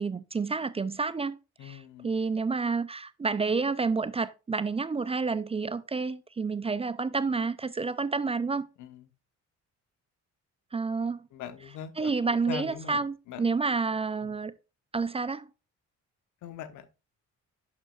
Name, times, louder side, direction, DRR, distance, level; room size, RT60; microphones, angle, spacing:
voice 1, 0.0-8.7 10.7-11.2 12.0-14.5 14.9-15.5, right 4 dB, 20° right, 0.4 m, -29 dB
voice 2, 1.6-2.1 8.8-9.1 11.3-13.4 14.2-14.3 16.4-16.9, left 9 dB, 80° left, 1.1 m, -41 dB
11.0 x 5.1 x 2.4 m
cardioid pair, 90°, 30 cm